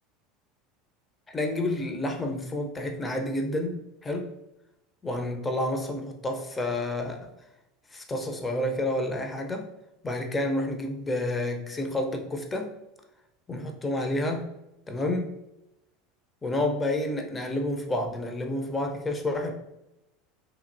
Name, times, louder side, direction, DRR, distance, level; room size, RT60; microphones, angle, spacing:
voice 1, 1.3-4.3 5.0-7.3 7.9-9.7 10.0-12.7 13.5-14.5 14.9-15.3 16.4-19.5, left 1 dB, 20° left, 4 dB, 0.6 m, -29 dB
3.0 x 2.6 x 2.6 m, 0.90 s
hypercardioid pair, 80°, 0 cm